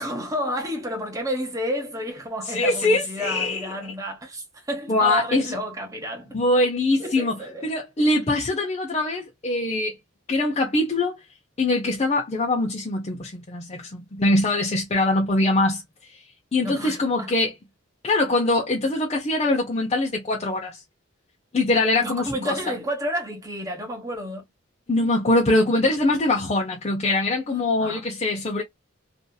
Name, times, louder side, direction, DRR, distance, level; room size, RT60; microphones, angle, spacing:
voice 1, 0.0-6.4 7.0-7.7 16.6-17.4 22.0-24.4 27.8-28.1, equal, 15° right, 0.9 m, -31 dB
voice 2, 2.5-3.6 4.9-5.5 6.3-7.4 7.6-9.9 10.3-11.2 11.6-15.8 16.5-17.5 18.0-20.8 21.5-22.7 24.9-28.6, left 2 dB, 30° left, 0.6 m, -23 dB
2.7 x 2.5 x 2.2 m
head